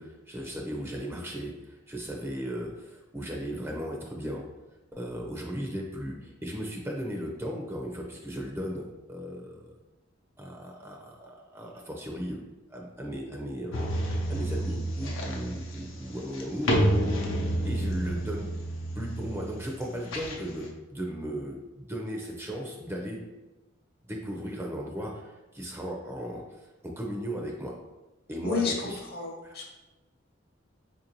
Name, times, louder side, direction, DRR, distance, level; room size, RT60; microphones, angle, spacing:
voice 1, 0.0-4.4 4.9-9.7 10.4-12.4 12.7-16.8 17.6-18.5 19.0-23.2 24.0-27.7 28.3-29.0 29.4-29.5, equal, 10° right, -1 dB, 0.5 m, -36 dB
sound 1, 13.7-20.7, right 1 dB, 85° left, 0.6 m, -30 dB
voice 2, 28.4-29.7, left 4 dB, 55° left, 0 dB, 0.7 m, -31 dB
4.6 x 2.6 x 2.9 m, 1.1 s
head